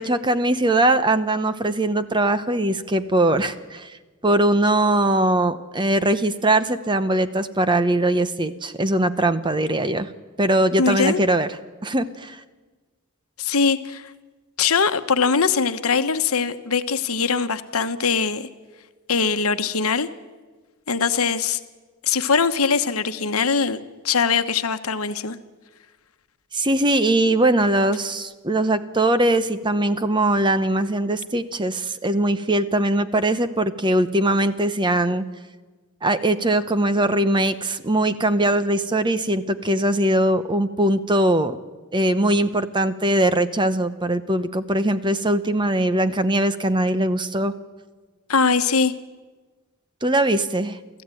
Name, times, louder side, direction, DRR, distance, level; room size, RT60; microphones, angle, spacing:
voice 1, 0.0-4.0 4.2-10.1 10.4-11.5 11.8-12.4 26.5-35.2 36.0-41.6 41.9-47.5 50.0-50.8, right 1 dB, 20° right, 11 dB, 0.9 m, -21 dB
voice 2, 10.8-11.2 13.4-14.0 14.6-18.5 19.1-20.1 20.9-21.6 22.0-23.8 24.0-25.4 48.3-48.9, left 5 dB, 75° left, 9 dB, 1.1 m, -21 dB
29.0 x 14.0 x 9.1 m, 1.3 s
head